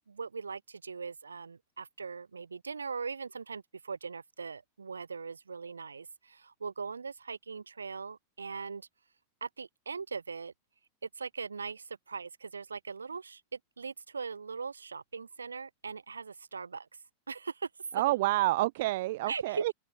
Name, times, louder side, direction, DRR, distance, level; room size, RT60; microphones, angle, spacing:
voice 1, 0.1-3.6 3.9-6.1 6.6-8.8 9.4-10.5 11.2-13.4 13.8-16.8 17.3-17.5 19.3-19.6, right 5 dB, 75° right, 7.6 m, -40 dB
voice 2, 17.9-19.7, right 18 dB, 50° right, 1.8 m, -28 dB
figure-of-eight pair, 90°, 0 cm